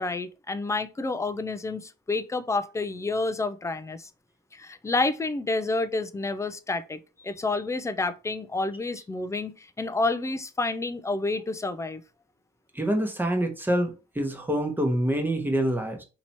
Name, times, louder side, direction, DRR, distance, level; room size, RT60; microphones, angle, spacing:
voice 1, 0.0-4.1 4.5-12.0, left 3 dB, 15° left, 0.4 m, -29 dB
voice 2, 12.7-16.0, right 1 dB, 10° right, 1.0 m, -26 dB
2.9 x 2.8 x 4.3 m
cardioid pair, 90°, 20 cm